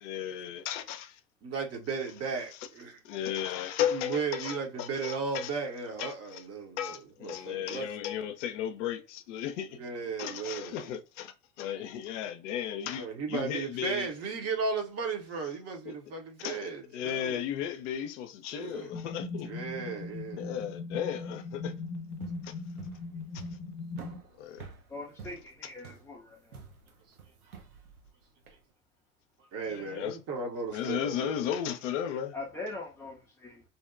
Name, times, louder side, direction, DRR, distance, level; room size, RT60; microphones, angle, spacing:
voice 1, 0.0-1.1 3.0-5.5 6.0-6.4 6.8-9.8 10.2-14.1 15.9-16.0 16.4-19.5 20.4-21.7 22.4-22.5 23.3-23.4 24.4-24.6 29.7-30.2 30.7-32.3, left 9 dB, 60° left, 0.5 m, -35 dB
voice 2, 1.4-3.0 3.9-7.9 9.7-10.9 13.0-17.4 18.5-18.9 19.4-20.5 29.5-31.5, right 5 dB, 35° right, 0.8 m, -35 dB
sound 1, 18.9-24.2, left 3 dB, 45° left, 0.9 m, -39 dB
sound 2, 22.1-28.6, right 5 dB, 85° right, 0.6 m, -49 dB
voice 3, 24.9-26.6 29.7-30.0 32.3-33.6, left 2 dB, 5° left, 0.3 m, -42 dB
2.7 x 2.1 x 2.4 m
hypercardioid pair, 80°, 42 cm